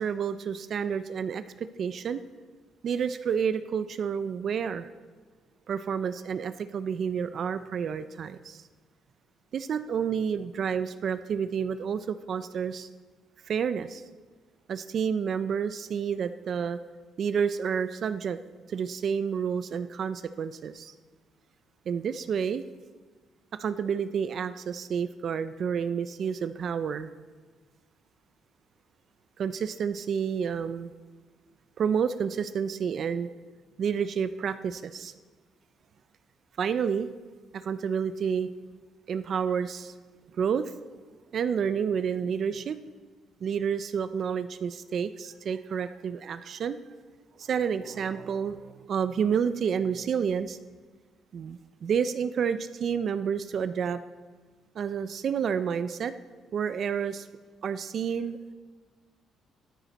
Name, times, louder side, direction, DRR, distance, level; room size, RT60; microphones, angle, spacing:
voice 1, 0.0-2.2 2.8-4.9 5.7-8.6 9.5-12.9 13.5-14.0 14.7-16.8 17.2-18.4 18.7-20.9 21.9-22.6 23.6-27.1 29.4-30.9 31.8-33.3 33.8-35.1 36.6-37.1 37.6-38.5 39.1-39.9 40.4-40.8 41.3-42.8 43.4-46.8 47.4-50.6 51.3-54.0 54.8-56.1 56.5-57.3 57.6-58.5, right 7 dB, 40° right, 12 dB, 0.4 m, -29 dB
14.0 x 13.0 x 4.1 m, 1.4 s
cardioid pair, 170°, 0 cm